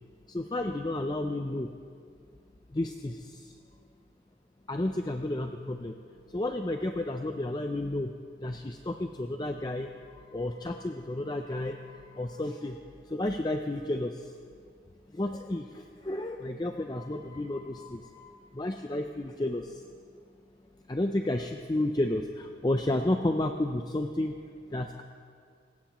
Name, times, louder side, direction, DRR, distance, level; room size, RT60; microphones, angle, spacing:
voice 1, 0.3-1.7 2.7-3.2 4.7-5.9 6.3-8.1 8.4-9.9 10.3-12.8 13.1-14.3 15.1-19.8 20.9-24.4 24.7-25.0, left 1 dB, 25° left, 5 dB, 0.5 m, -31 dB
26.0 x 16.0 x 3.1 m, 2.3 s
head